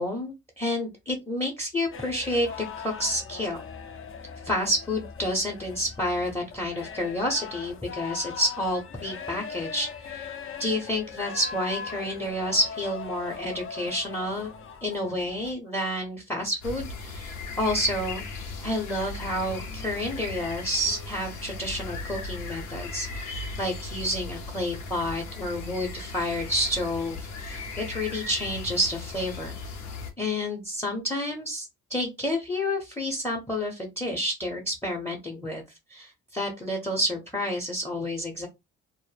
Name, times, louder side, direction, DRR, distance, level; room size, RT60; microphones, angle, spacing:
voice 1, 0.0-2.5 2.8-3.6 4.4-10.3 10.6-14.5 14.8-18.2 18.6-29.5 30.2-35.6 35.9-38.5, left 1 dB, 10° left, 2 dB, 0.6 m, -29 dB
sound 1, 1.9-15.5, left 6 dB, 45° left, 0.5 m, -40 dB
sound 2, 16.6-30.1, left 3 dB, 85° left, 0.7 m, -37 dB
2.1 x 2.0 x 3.1 m, 0.22 s
cardioid pair, 90°, 30 cm